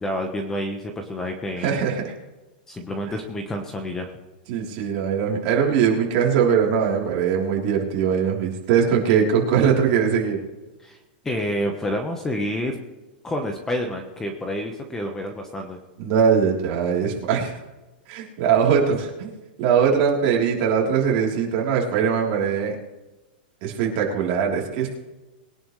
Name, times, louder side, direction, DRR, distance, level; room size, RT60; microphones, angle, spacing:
voice 1, 0.0-1.8 2.7-4.1 10.8-11.0 11.2-12.8 13.2-15.8, left 1 dB, 10° left, 4 dB, 1.1 m, -28 dB
voice 2, 1.6-2.1 4.5-10.4 16.0-17.6 18.1-19.3 19.6-22.8 23.6-25.0, right 7 dB, 40° right, -2 dB, 3.6 m, -21 dB
22.0 x 10.5 x 3.2 m, 1.1 s
supercardioid pair, 165°, 5 cm